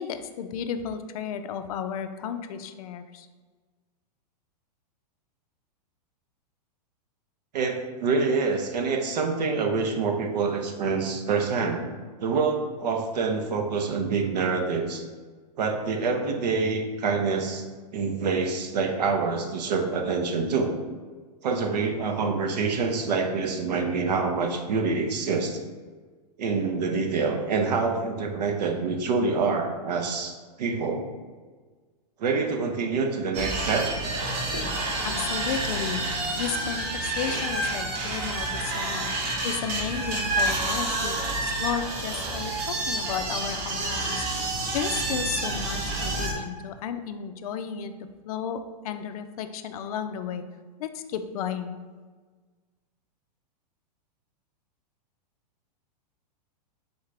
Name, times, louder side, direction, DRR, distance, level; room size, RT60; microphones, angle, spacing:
voice 1, 0.0-3.3 35.0-41.2 41.4-44.2 44.7-47.9 48.2-50.4 50.8-51.8, left 7 dB, 60° left, 9 dB, 0.4 m, -33 dB
voice 2, 7.5-11.8 12.2-15.0 15.6-17.6 17.9-20.8 21.4-25.6 26.4-31.0 32.2-33.9 37.3-37.4, right 4 dB, 75° right, 4 dB, 0.8 m, -26 dB
sound 1, 33.3-46.3, right 2 dB, 40° right, 0.9 m, -29 dB
3.9 x 3.6 x 3.2 m, 1.4 s
hypercardioid pair, 145°, 21 cm